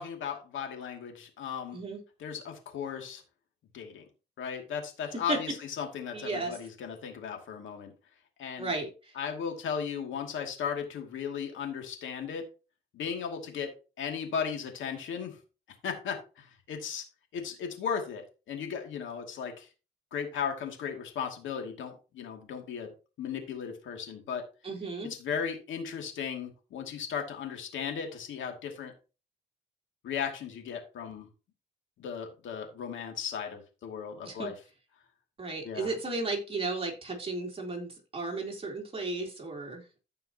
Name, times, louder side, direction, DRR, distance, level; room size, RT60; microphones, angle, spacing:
voice 1, 0.0-1.8 2.2-3.2 3.7-4.1 4.4-5.5 5.8-7.9 8.4-8.7 9.2-12.4 12.9-15.4 15.8-17.0 17.3-19.7 20.1-22.9 23.2-24.4 25.2-28.9 30.0-31.3 32.0-34.5 35.6-35.9, left 7 dB, 75° left, 3 dB, 2.5 m, -36 dB
voice 2, 6.1-6.6 8.6-9.2 24.6-25.1 34.2-34.5 35.4-39.8, right 3 dB, 30° right, 0 dB, 3.4 m, -34 dB
15.0 x 5.6 x 2.9 m, 0.33 s
cardioid pair, 90°, 20 cm